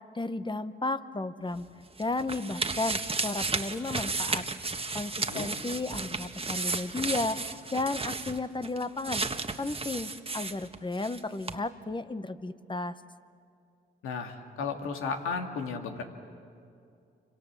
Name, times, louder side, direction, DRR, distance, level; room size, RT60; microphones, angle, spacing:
voice 1, 0.0-1.7 2.0-4.4 4.9-9.2 9.6-12.9, left 2 dB, 25° left, 11 dB, 1.3 m, -33 dB
sound 1, 1.6-11.2 11.5-11.6, right 3 dB, 25° right, 1.5 m, -34 dB
voice 2, 14.0-16.0, left 5 dB, 90° left, 4 dB, 2.3 m, -34 dB
29.5 x 25.5 x 7.5 m, 2.4 s
supercardioid pair, 55°, 21 cm